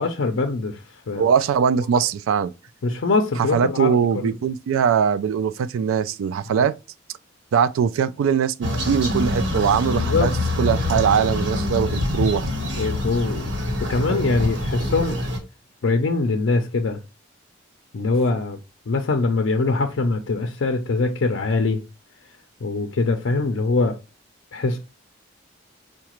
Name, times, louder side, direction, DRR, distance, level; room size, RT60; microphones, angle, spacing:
voice 1, 0.0-1.2 2.8-4.0 6.6-6.7 9.9-10.3 12.7-13.5 13.8-15.2 15.8-17.0 17.9-18.6 18.9-21.8 22.6-24.0 24.5-24.8, left 3 dB, 65° left, 0.4 m, -23 dB
voice 2, 1.2-2.5 3.4-6.8 7.5-10.3 10.6-12.5, right 7 dB, 90° right, 0.3 m, -21 dB
sound 1, 8.6-15.4, left 2 dB, 65° right, 1.1 m, -25 dB
4.8 x 2.1 x 2.9 m
head